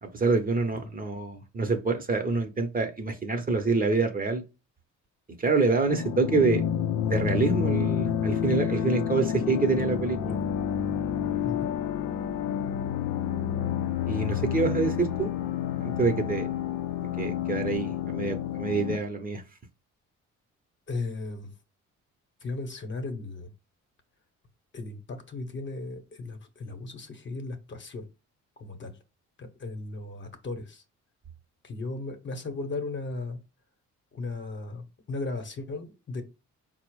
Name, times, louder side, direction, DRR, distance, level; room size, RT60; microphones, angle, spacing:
voice 1, 0.0-4.4 5.4-6.6 7.0-10.4 14.1-15.3 15.7-16.6 17.2-19.4, right 4 dB, 30° right, 6 dB, 0.8 m, -26 dB
sound 1, 5.9-19.0, left 9 dB, 90° left, 0.5 m, -29 dB
voice 2, 11.4-11.7 20.9-21.5 22.4-23.5 24.7-28.0 28.6-29.0 29.4-30.8 31.6-33.4 34.1-36.2, left 3 dB, 40° left, 6 dB, 0.9 m, -36 dB
4.3 x 2.0 x 4.5 m, 0.29 s
cardioid pair, 90°, 30 cm